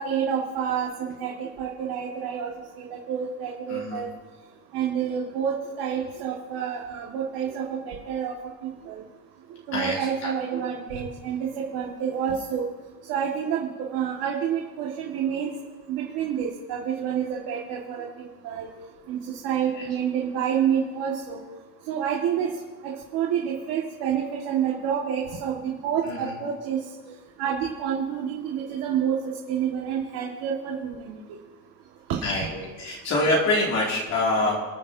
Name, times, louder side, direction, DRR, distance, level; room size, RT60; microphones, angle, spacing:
voice 1, 0.0-2.5 2.8-4.1 4.7-8.3 8.9-9.0 9.7-11.4 11.7-12.7 13.1-15.5 15.9-18.7 19.1-21.4 21.9-22.5 22.8-26.8 27.1-29.2 29.5-31.2 32.1-32.2, right 8 dB, 70° right, -2 dB, 1.9 m, -28 dB
voice 2, 3.7-4.0 9.7-10.3 19.7-19.8 26.0-26.3 32.2-34.6, left 2 dB, 45° left, -4 dB, 2.6 m, -25 dB
29.0 x 9.8 x 2.8 m, 1.3 s
cardioid pair, 170°, 39 cm